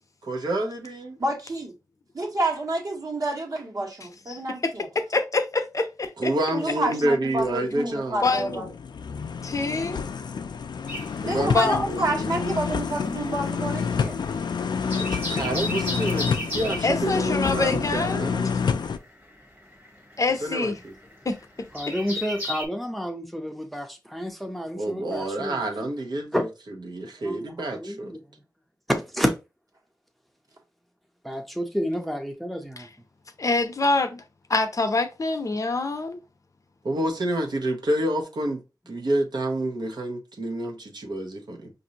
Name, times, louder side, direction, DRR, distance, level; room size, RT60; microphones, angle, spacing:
voice 1, 0.2-1.2 6.2-8.2 11.2-12.2 15.0-18.5 20.4-20.9 24.8-26.3 26.9-28.2 36.8-38.6 38.9-41.7, right 1 dB, 75° right, 0.9 m, -28 dB
voice 2, 1.2-1.7 2.1-4.9 6.5-8.7 11.3-14.2, right 1 dB, 55° right, 1.2 m, -29 dB
voice 3, 4.9-6.3 8.2-8.6 9.4-10.0 11.4-11.8 16.8-18.3 20.2-20.8 21.2-21.4 33.4-34.2 34.5-36.2, left 3 dB, 50° left, 0.6 m, -25 dB
sound 1, 7.4-7.5 8.0-19.0, left 6 dB, 80° left, 0.4 m, -28 dB
sound 2, 10.9-12.3 12.5-22.6, left 1 dB, 25° right, 1.1 m, -35 dB
voice 4, 21.7-25.7 26.3-26.4 27.2-28.4 28.9-29.3 31.2-32.9, equal, ahead, 0.6 m, -30 dB
5.2 x 2.6 x 2.8 m
wide cardioid pair, 100°, 7 cm